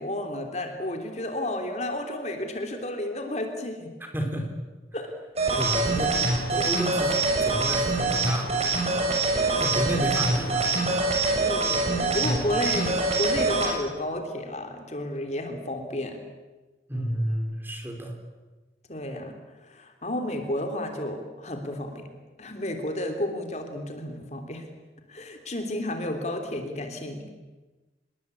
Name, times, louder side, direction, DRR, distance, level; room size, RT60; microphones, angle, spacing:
voice 1, 0.0-3.9 4.9-5.1 6.0-6.1 6.5-6.8 9.5-9.7 11.4-16.2 16.9-17.2 18.9-22.1 22.4-24.7 25.1-27.3, left 1 dB, 40° left, 6 dB, 3.3 m, -32 dB
voice 2, 4.0-4.6 5.5-6.2 6.5-8.6 8.9-9.2 9.6-10.7 16.9-18.2, equal, 10° right, 3 dB, 3.9 m, -31 dB
sound 1, 5.4-13.7, right 3 dB, 35° right, 6.7 m, -24 dB
26.5 x 21.5 x 8.5 m, 1.2 s
head